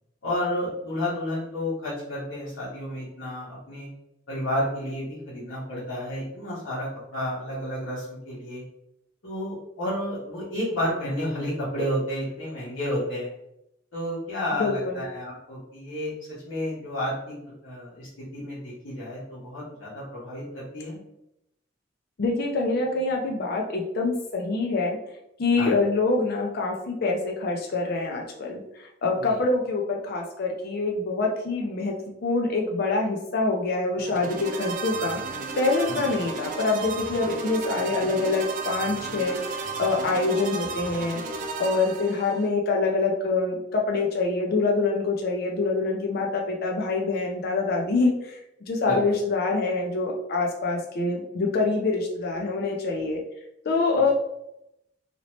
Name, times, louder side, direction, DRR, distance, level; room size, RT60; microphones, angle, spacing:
voice 1, 0.2-3.9 4.3-8.6 9.2-13.3 13.9-16.1 16.4-17.4 17.6-21.0 25.6-25.8 29.3-29.4 35.9-36.0 48.8-49.0, left 1 dB, 80° left, -10 dB, 1.2 m, -31 dB
voice 2, 14.5-15.0 22.2-25.0 25.4-31.9 32.2-35.2 35.6-41.2 41.6-53.2 53.6-54.1, left 3 dB, 55° left, 0 dB, 0.4 m, -25 dB
sound 1, 34.0-42.5, right 4 dB, 45° right, 0.5 m, -33 dB
2.9 x 2.8 x 3.0 m, 0.84 s
head